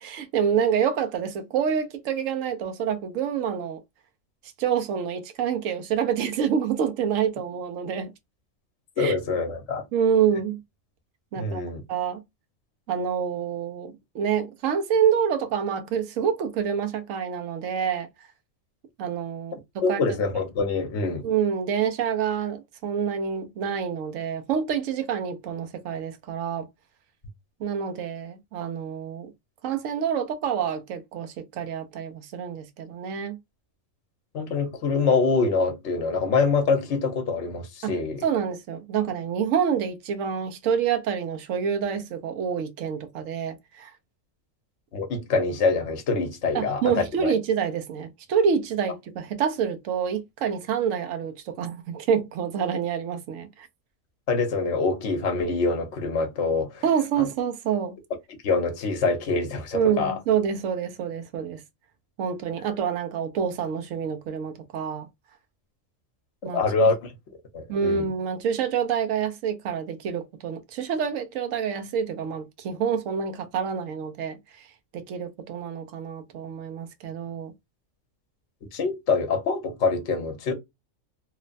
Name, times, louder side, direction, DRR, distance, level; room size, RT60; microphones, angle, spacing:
voice 1, 0.0-3.8 4.6-8.1 9.0-9.1 9.9-10.6 11.3-11.6 11.9-12.2 12.9-18.1 19.0-20.0 21.2-26.7 27.6-29.3 29.6-33.4 37.8-37.9 38.2-43.9 46.5-53.7 56.8-58.0 59.7-61.6 62.2-65.1 66.4-66.6 67.7-74.7 74.9-77.5, right 7 dB, 80° right, 1.0 m, -27 dB
voice 2, 9.0-9.8 11.4-11.8 19.8-21.3 34.3-38.2 44.9-46.8 47.2-47.3 54.3-56.8 57.2-57.3 58.3-60.2 66.5-67.1 67.5-68.1 78.7-80.5, left 4 dB, 65° left, 1.0 m, -25 dB
3.0 x 2.1 x 2.4 m
omnidirectional pair, 1.3 m